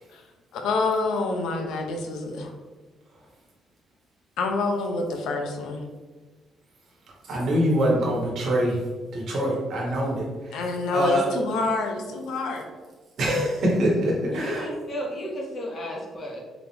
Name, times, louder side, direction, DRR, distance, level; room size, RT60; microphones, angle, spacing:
voice 1, 0.5-2.5 4.4-5.8 10.5-12.6, left 3 dB, 80° left, 3 dB, 0.7 m, -27 dB
voice 2, 7.3-8.8 9.1-11.3 13.2-14.7, equal, 60° right, -3 dB, 1.3 m, -24 dB
voice 3, 14.3-16.4, equal, 45° left, -1 dB, 1.1 m, -33 dB
4.0 x 3.4 x 2.8 m, 1.3 s
cardioid pair, 120°, 0 cm